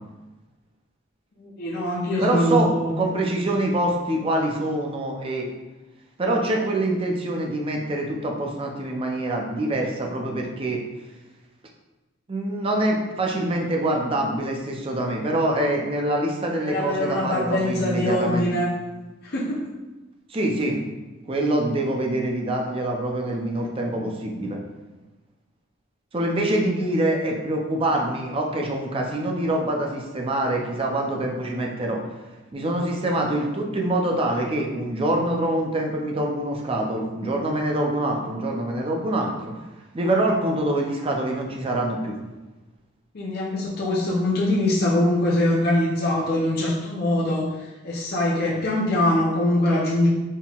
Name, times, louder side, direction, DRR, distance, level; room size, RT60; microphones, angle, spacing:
voice 1, 1.4-3.0 16.6-18.7 19.2-19.6 26.4-26.6 43.1-50.1, left 1 dB, 50° left, -5 dB, 0.6 m, -23 dB
voice 2, 2.2-2.7 3.0-5.5 6.2-10.8 12.3-18.5 20.3-20.8 21.3-24.6 26.1-32.0 32.5-39.5 39.9-42.1, right 1 dB, 25° right, 0 dB, 0.5 m, -25 dB
4.2 x 3.7 x 2.4 m, 1.1 s
head